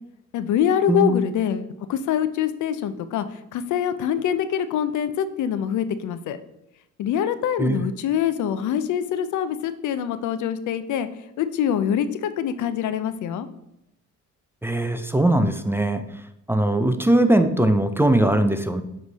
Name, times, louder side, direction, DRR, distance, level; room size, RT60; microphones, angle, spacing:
voice 1, 0.3-3.3 3.5-6.4 7.0-11.1 11.4-13.5, left 9 dB, 75° left, 12 dB, 0.5 m, -24 dB
voice 2, 14.6-16.0 16.5-18.8, right 1 dB, 10° right, 8 dB, 0.4 m, -20 dB
7.2 x 3.3 x 4.0 m, 0.84 s
cardioid pair, 90°, 30 cm